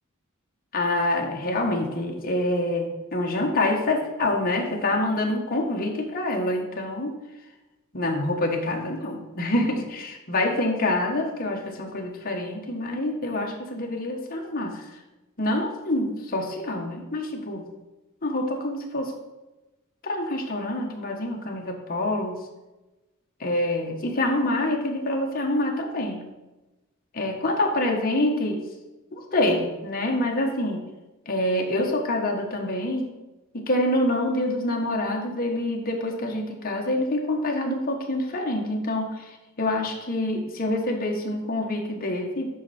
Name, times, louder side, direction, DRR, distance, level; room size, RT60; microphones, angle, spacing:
voice 1, 0.7-7.1 7.9-14.8 15.4-17.7 18.2-19.1 20.0-22.4 23.4-26.3 27.1-28.6 29.1-30.8 31.3-33.1 33.7-39.1 39.6-42.5, left 1 dB, 45° left, 1 dB, 1.4 m, -26 dB
11.5 x 4.6 x 4.3 m, 1.1 s
head